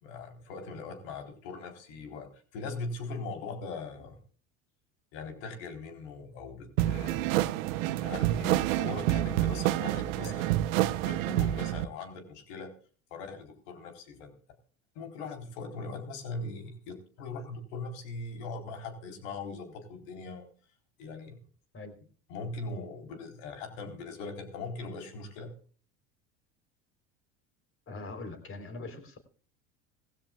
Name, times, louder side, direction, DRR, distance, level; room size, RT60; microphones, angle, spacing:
voice 1, 0.0-4.2 5.1-7.2 7.8-10.5 11.0-12.7 13.1-14.3 15.0-20.5 21.0-21.4 22.3-25.5, left 3 dB, 75° left, 6 dB, 3.9 m, -40 dB
sound 1, 6.8-11.9, right 15 dB, 80° right, 0.9 m, -28 dB
voice 2, 27.9-29.2, left 3 dB, 35° left, 7 dB, 3.7 m, -42 dB
18.5 x 15.5 x 2.4 m, 0.41 s
supercardioid pair, 95°, 39 cm